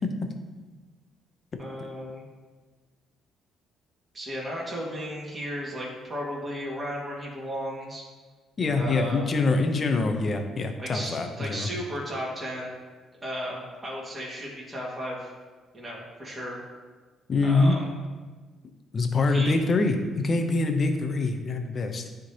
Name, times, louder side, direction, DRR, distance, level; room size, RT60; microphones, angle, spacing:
voice 1, 1.6-2.2 4.1-8.0 8.8-9.3 10.8-11.1 11.4-12.8 13.2-15.3 15.7-16.6 17.4-17.8 19.3-19.5, equal, 25° right, -5 dB, 2.0 m, -34 dB
voice 2, 8.6-11.7 17.3-17.8 18.9-22.1, left 3 dB, 45° left, 5 dB, 0.8 m, -24 dB
9.8 x 3.8 x 2.9 m, 1.4 s
supercardioid pair, 60°, 0 cm